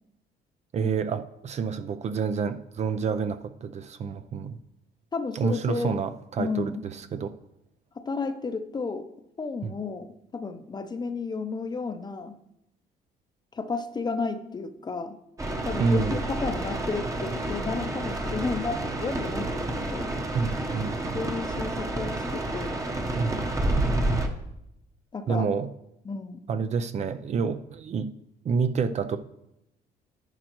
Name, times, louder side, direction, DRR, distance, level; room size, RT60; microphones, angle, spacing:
voice 1, 0.7-4.6 5.4-7.3 9.6-9.7 15.8-16.2 20.3-21.2 23.1-23.6 25.3-25.7 26.5-28.1 28.4-29.2, right 5 dB, 40° right, 10 dB, 0.5 m, -28 dB
voice 2, 5.1-5.9 6.4-6.8 8.0-9.1 9.4-12.3 13.5-15.2 15.6-20.1 21.1-22.8 25.1-25.5 26.0-26.4, left 4 dB, 25° left, 9 dB, 0.7 m, -32 dB
sound 1, 15.4-24.3, right 1 dB, 20° right, 1.0 m, -29 dB
10.5 x 9.1 x 3.0 m, 0.83 s
cardioid pair, 110°, 17 cm